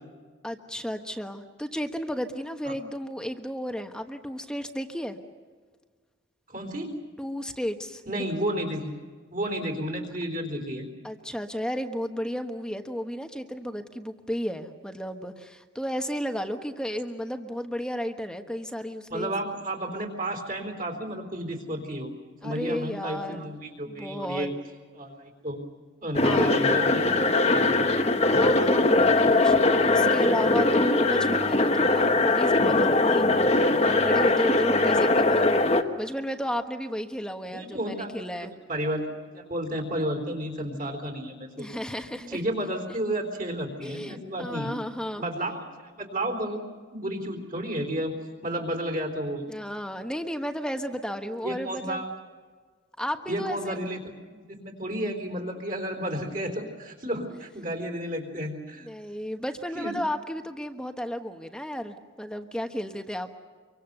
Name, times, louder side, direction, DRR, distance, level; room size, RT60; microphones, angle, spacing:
voice 1, 0.4-5.2 7.2-8.2 11.0-19.3 22.4-23.5 23.9-24.5 26.2-26.6 28.3-38.5 41.6-42.4 43.8-45.2 49.5-52.0 53.0-53.8 58.8-63.3, equal, 5° left, 6 dB, 1.2 m, -33 dB
voice 2, 6.5-7.0 8.1-8.9 9.3-10.9 19.1-22.1 22.4-24.5 25.0-25.6 26.0-27.2 27.4-27.9 37.5-39.1 39.3-41.7 42.0-44.7 45.2-46.6 46.9-48.2 48.4-49.4 51.4-52.1 53.3-58.9 59.7-59.9, right 1 dB, 45° right, 4 dB, 3.9 m, -32 dB
sound 1, 26.1-35.8, left 2 dB, 30° left, 1.2 m, -21 dB
26.0 x 24.0 x 6.8 m, 1.5 s
head